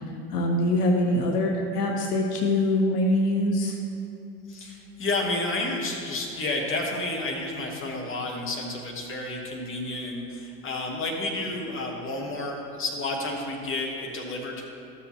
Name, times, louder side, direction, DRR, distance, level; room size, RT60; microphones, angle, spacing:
voice 1, 0.3-3.8, left 1 dB, 65° left, 1 dB, 1.0 m, -23 dB
voice 2, 4.5-14.6, left 2 dB, 25° left, 0 dB, 1.4 m, -31 dB
13.0 x 7.0 x 3.0 m, 2.8 s
figure-of-eight pair, 80°, 50 cm